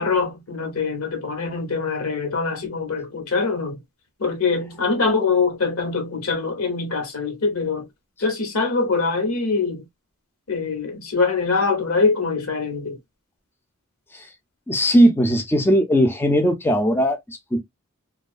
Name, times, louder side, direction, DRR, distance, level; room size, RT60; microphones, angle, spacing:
voice 1, 0.0-3.8 4.2-7.9 8.2-9.8 10.5-13.0, left 4 dB, 85° left, 1.0 m, -23 dB
voice 2, 14.7-17.6, equal, 10° left, 0.3 m, -18 dB
2.6 x 2.3 x 2.3 m
head